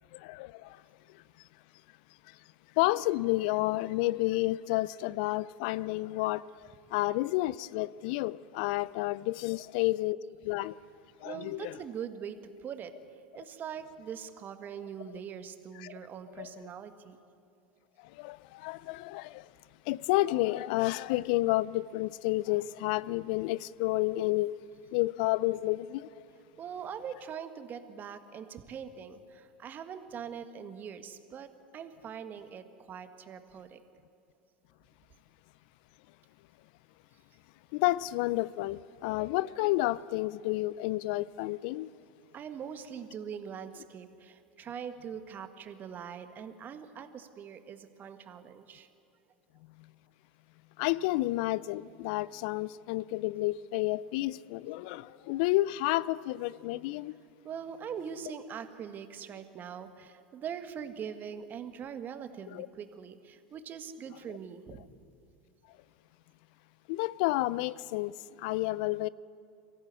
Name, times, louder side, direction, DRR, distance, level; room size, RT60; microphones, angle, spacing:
voice 1, 0.1-0.8 2.8-10.2 10.4-10.7 11.2-11.8 15.8-15.9 16.4-16.6 18.1-19.5 19.9-24.6 24.9-26.1 37.7-41.9 50.8-57.2 62.5-62.7 66.9-68.1 68.4-69.1, left 18 dB, 60° left, 0.4 m, -30 dB
voice 2, 11.2-12.9 13.3-17.2 26.6-33.8 42.3-48.9 57.4-64.9, right 7 dB, 35° right, 1.5 m, -42 dB
24.0 x 15.5 x 8.2 m
hypercardioid pair, 80°, 5 cm